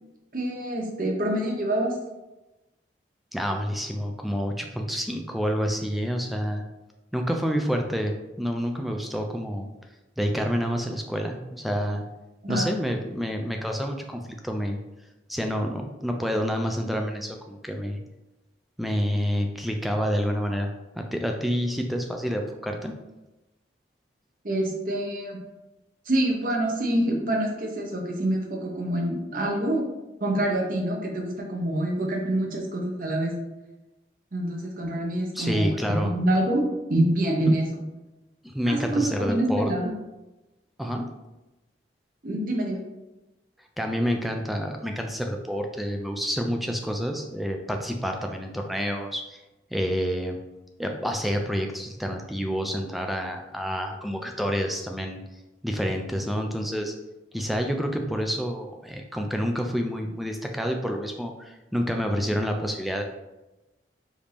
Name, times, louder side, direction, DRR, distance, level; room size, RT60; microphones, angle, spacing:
voice 1, 0.3-2.0 12.4-12.7 24.4-25.4 26.1-29.8 30.2-33.3 34.3-35.7 36.0-36.6 36.9-37.8 38.7-39.9 42.2-42.8, right 1 dB, 50° right, 0 dB, 0.9 m, -26 dB
voice 2, 3.3-6.6 7.1-9.7 10.2-12.0 12.5-14.8 15.3-18.0 18.8-22.9 35.3-36.1 38.4-39.7 40.8-41.1 43.8-49.4 49.7-50.4 50.8-55.2 55.6-56.9 57.3-63.0, equal, ahead, 3 dB, 0.3 m, -28 dB
5.0 x 2.7 x 3.4 m, 1.0 s
head